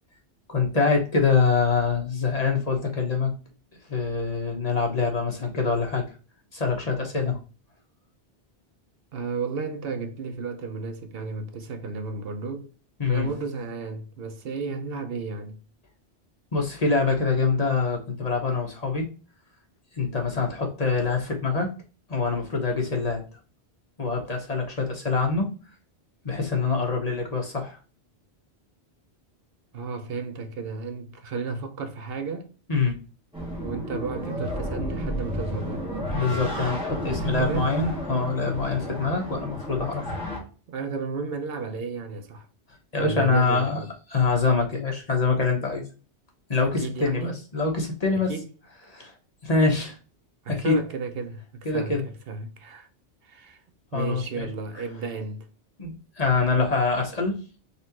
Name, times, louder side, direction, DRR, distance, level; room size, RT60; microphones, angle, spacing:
voice 1, 0.5-3.3 3.9-6.0 6.5-7.4 13.0-13.3 16.5-19.0 20.0-21.7 22.1-23.2 24.0-25.5 26.2-27.8 32.7-33.0 36.1-40.0 42.9-43.8 44.1-45.8 46.5-48.3 48.9-49.1 49.4-50.0 50.5-50.7 51.6-52.0 53.9-54.5 55.8-57.4, left 4 dB, 40° left, 1.0 m, -25 dB
voice 2, 9.1-12.7 13.1-15.6 29.7-32.5 33.4-35.8 37.1-37.7 40.7-42.5 43.0-43.9 46.8-47.3 48.3-48.5 50.4-52.9 53.3-53.6 53.9-55.5, right 4 dB, 65° right, 0.9 m, -33 dB
sound 1, 33.3-40.4, equal, 5° right, 1.5 m, -32 dB
4.1 x 3.3 x 2.8 m
omnidirectional pair, 1.1 m